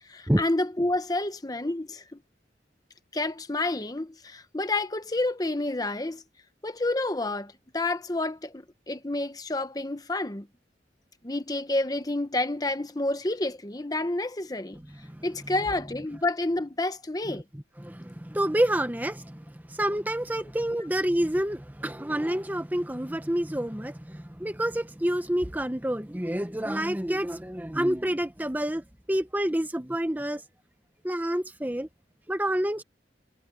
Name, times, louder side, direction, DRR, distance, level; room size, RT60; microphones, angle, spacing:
voice 1, 0.1-2.2 3.1-6.2 6.6-10.5 11.2-14.8 15.2-17.4, left 2 dB, 20° left, 1.0 m, -29 dB
voice 2, 14.7-15.2 17.3-30.4 31.0-31.9 32.3-32.8, right 1 dB, 10° right, 0.9 m, -28 dB
head